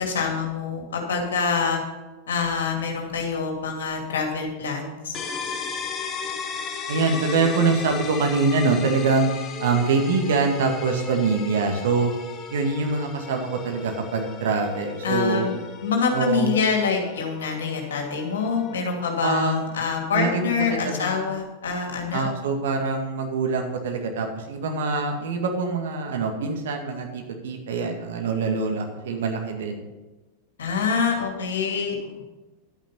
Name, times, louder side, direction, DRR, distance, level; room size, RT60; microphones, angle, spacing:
voice 1, 0.0-1.8 2.3-5.2 15.0-15.5 15.8-22.3 30.6-32.2, left 5 dB, 65° left, 2 dB, 2.6 m, -26 dB
sound 1, 5.1-20.7, left 5 dB, 25° left, 1.3 m, -36 dB
voice 2, 6.9-9.3 9.6-12.1 12.5-15.5 16.1-16.5 19.2-19.6 20.1-20.4 20.8-21.1 22.1-29.8, right 4 dB, 60° right, 3 dB, 2.0 m, -24 dB
11.5 x 9.1 x 5.6 m, 1.2 s
figure-of-eight pair, 90°, 0 cm